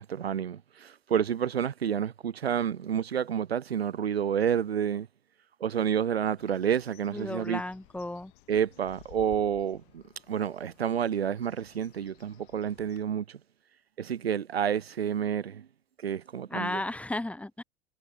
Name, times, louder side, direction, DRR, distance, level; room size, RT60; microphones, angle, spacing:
voice 1, 0.0-5.1 5.6-7.6 8.5-13.4 14.0-15.7 16.0-16.8, right 8 dB, 75° right, 0.9 m, -29 dB
Bird, 6.4-13.0, left 21 dB, 55° left, 6.6 m, -57 dB
voice 2, 7.1-8.3 16.5-17.6, left 2 dB, 5° left, 1.7 m, -34 dB
figure-of-eight pair, 85°, 31 cm